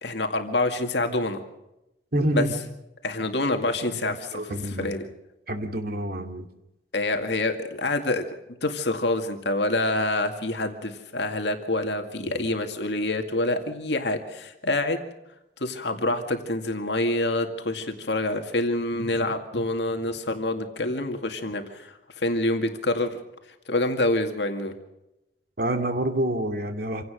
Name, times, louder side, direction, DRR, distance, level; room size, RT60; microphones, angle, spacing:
voice 1, 0.0-1.4 2.3-2.5 3.0-5.1 6.9-8.2 8.6-15.0 15.6-23.2 23.7-24.7, left 2 dB, 70° left, 5 dB, 2.2 m, -27 dB
voice 2, 2.1-2.5 3.9-4.0 4.3-4.9 5.5-6.5 12.2-12.4 25.6-27.0, right 1 dB, 55° right, 6 dB, 2.4 m, -27 dB
26.5 x 17.5 x 6.4 m, 0.91 s
head